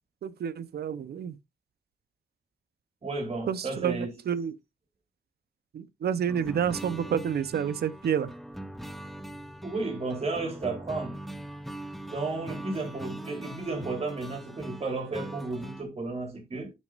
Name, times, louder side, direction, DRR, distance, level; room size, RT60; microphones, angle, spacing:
voice 1, 0.2-1.4 3.5-4.6 5.7-8.3, right 8 dB, 90° right, 0.7 m, -29 dB
voice 2, 3.0-4.1 9.6-11.2 12.1-16.7, right 3 dB, 40° right, 3.3 m, -33 dB
sound 1, 6.3-15.8, right 1 dB, ahead, 0.9 m, -41 dB
12.0 x 6.5 x 2.5 m
wide cardioid pair, 100°, 16 cm